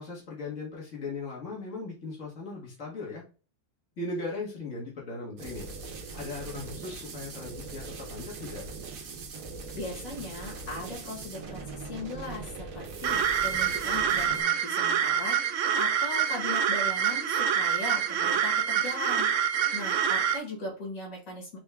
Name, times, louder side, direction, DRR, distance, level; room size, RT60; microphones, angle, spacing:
voice 1, 0.0-3.2 4.0-5.7 6.1-8.6, left 3 dB, 65° left, -4 dB, 1.8 m, -38 dB
sound 1, 5.4-14.4, right 4 dB, 90° right, 1.3 m, -41 dB
voice 2, 9.7-21.6, left 2 dB, 90° left, -2 dB, 2.2 m, -38 dB
sound 2, 13.0-20.4, right 8 dB, 70° right, 0.9 m, -26 dB
5.2 x 2.3 x 3.4 m, 0.35 s
omnidirectional pair, 1.4 m